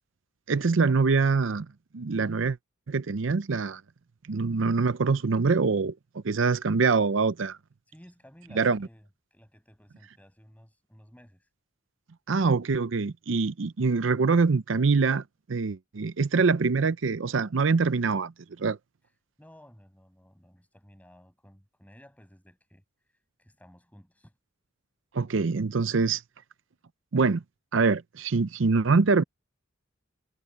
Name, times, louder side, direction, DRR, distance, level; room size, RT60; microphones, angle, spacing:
voice 1, 0.5-1.7 1.9-2.6 2.9-3.8 4.3-5.9 6.2-7.6 8.6-8.8 12.3-18.3 18.6-18.8 25.1-26.2 27.1-27.4 27.7-29.2, right 4 dB, 70° right, 0.6 m, -24 dB
voice 2, 7.9-11.5 19.4-22.8 23.4-24.4, equal, 10° left, 6.2 m, -55 dB
head